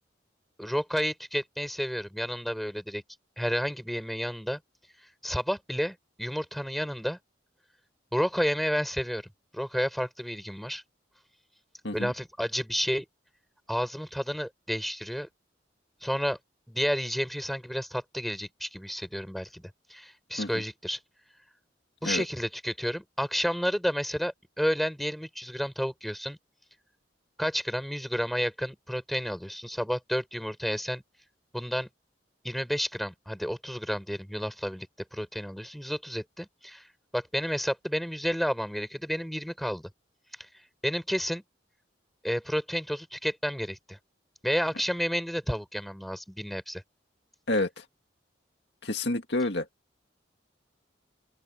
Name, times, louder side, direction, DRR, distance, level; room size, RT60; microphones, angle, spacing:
voice 1, 0.6-3.0 3.4-4.6 5.0-7.2 8.1-9.2 9.5-10.8 11.9-13.0 13.7-15.3 16.0-16.4 16.7-21.0 22.0-26.4 27.4-31.0 31.5-31.9 32.4-34.9 35.1-36.9 37.1-39.9 40.4-40.5 40.8-41.4 42.2-44.0 44.4-46.8, equal, ahead, 6.9 m, -31 dB
voice 2, 47.5-47.8 48.8-49.7, left 2 dB, 60° left, 2.2 m, -28 dB
open air
head